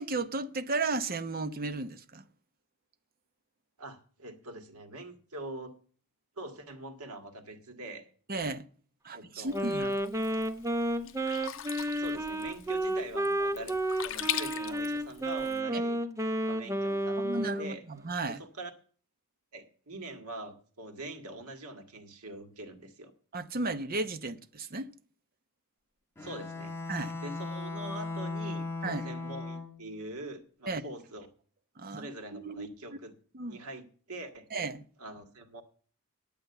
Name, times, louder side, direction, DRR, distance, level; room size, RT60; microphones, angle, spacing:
voice 1, 0.0-2.2 8.3-8.7 9.0-10.0 15.7-15.8 17.2-18.4 23.3-24.9 26.9-27.1 28.8-29.0 30.7-30.8 31.8-32.7 33.3-33.6 34.5-34.8, right 3 dB, 40° right, 0.8 m, -34 dB
voice 2, 3.8-5.7 6.4-8.1 9.1-9.7 11.9-13.8 14.0-16.0 16.5-17.8 18.3-18.7 19.5-23.1 26.2-26.8 27.2-31.3 31.9-33.1 33.5-34.5 35.0-35.6, right 1 dB, 80° right, 1.8 m, -44 dB
Sink (filling or washing), 9.5-15.6, left 10 dB, 60° left, 0.7 m, -40 dB
Wind instrument woodwind instrument, 9.5-17.7, right 1 dB, 15° right, 0.7 m, -31 dB
Bowed string instrument, 26.2-30.0, left 3 dB, 10° left, 1.3 m, -37 dB
9.8 x 8.8 x 6.7 m
head